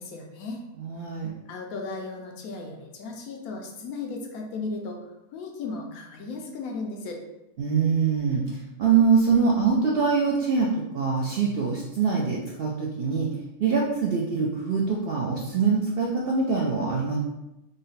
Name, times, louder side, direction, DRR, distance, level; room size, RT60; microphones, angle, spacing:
voice 1, 0.0-0.6 1.5-5.0 5.3-7.2, left 3 dB, 80° left, 1 dB, 1.1 m, -35 dB
voice 2, 0.8-1.3 7.6-10.7 10.9-13.3 13.6-17.2, right 5 dB, 70° right, -3 dB, 0.5 m, -24 dB
3.8 x 2.1 x 3.9 m, 0.92 s
omnidirectional pair, 1.5 m